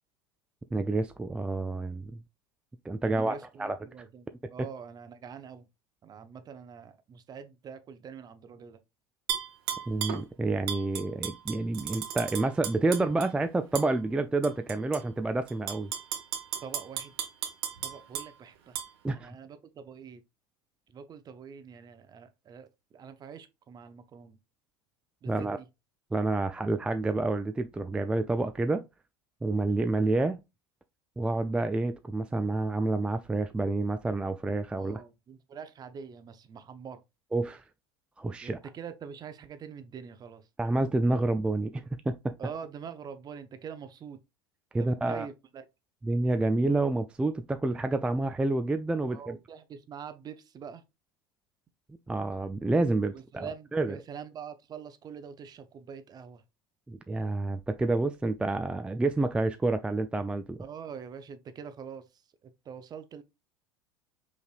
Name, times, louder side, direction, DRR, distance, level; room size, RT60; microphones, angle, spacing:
voice 1, 0.7-2.2 2.9-3.8 9.9-15.9 19.0-19.3 25.3-25.6 26.1-28.8 29.4-30.4 31.2-35.0 37.3-37.6 38.2-38.6 40.6-42.3 44.7-45.3 46.0-49.4 52.1-54.0 56.9-60.6, right 2 dB, 10° right, 0.3 m, -29 dB
voice 2, 3.0-5.6 6.0-8.8 16.6-17.1 17.8-18.8 19.1-20.2 20.9-24.4 25.2-25.7 34.7-37.0 38.4-40.5 42.4-44.2 44.8-45.6 49.0-50.8 53.1-56.4 60.6-63.2, right 7 dB, 30° right, 0.7 m, -44 dB
Tap / Glass, 9.3-10.2 10.7-13.3 13.8-13.9 14.4-15.0 15.5-18.3 18.8-18.9, right 9 dB, 75° right, 1.0 m, -34 dB
5.2 x 3.2 x 2.4 m
hypercardioid pair, 85°, 12 cm